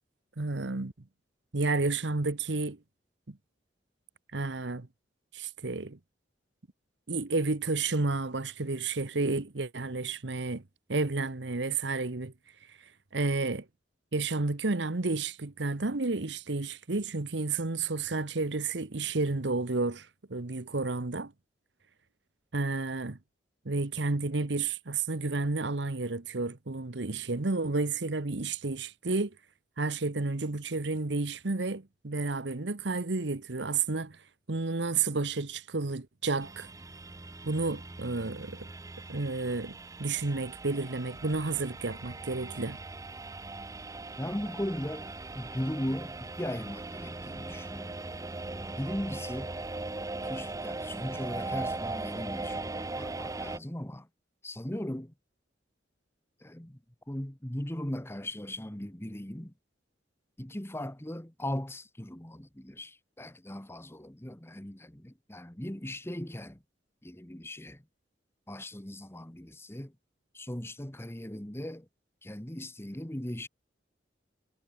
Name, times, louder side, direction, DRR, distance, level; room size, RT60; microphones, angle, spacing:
voice 1, 0.4-0.9 1.5-2.8 3.3-3.4 4.3-4.9 5.3-6.0 7.1-10.6 10.9-12.3 13.1-13.6 14.1-21.3 22.5-23.2 23.6-29.3 29.8-34.2 34.5-36.7 37.4-38.7 39.1-42.8, right 3 dB, 70° right, 1.1 m, -31 dB
sound 1, 36.4-53.6, right 2 dB, 20° right, 0.6 m, -39 dB
voice 2, 44.2-48.0 48.8-49.5 50.2-54.1 54.4-55.1 56.4-56.8 57.1-59.5 60.4-66.6 67.0-67.8 68.5-69.9 70.3-71.9 72.2-73.5, left 1 dB, 15° left, 1.4 m, -38 dB
head